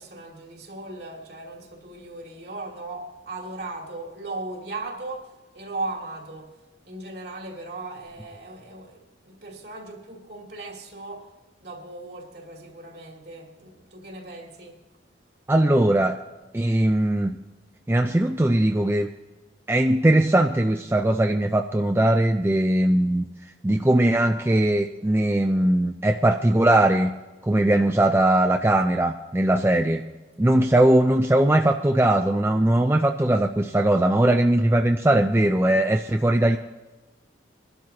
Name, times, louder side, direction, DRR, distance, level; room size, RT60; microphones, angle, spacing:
voice 1, 0.0-6.6 6.9-11.3 11.6-14.8, right 2 dB, 55° right, 2.4 m, -37 dB
voice 2, 15.5-16.2 16.5-17.4 17.9-19.1 19.7-23.2 23.6-27.1 27.4-30.0 30.4-36.6, right 1 dB, 15° right, 0.4 m, -20 dB
21.5 x 12.0 x 2.9 m
head